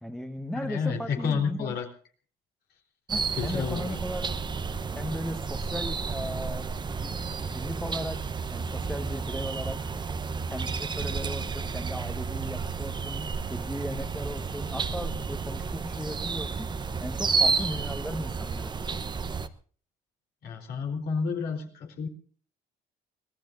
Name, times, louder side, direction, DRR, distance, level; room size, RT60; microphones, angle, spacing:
voice 1, 0.0-1.8 3.1-4.3 4.9-8.2 8.5-9.8 10.5-16.7 17.0-18.7, equal, 5° left, 7 dB, 1.3 m, -37 dB
voice 2, 0.5-1.9 3.3-4.0 20.4-22.1, left 5 dB, 70° left, 2 dB, 3.9 m, -30 dB
sound 1, 3.1-19.5, right 5 dB, 25° right, 0.9 m, -31 dB
25.0 x 18.0 x 2.6 m, 0.43 s
cardioid pair, 110°, 17 cm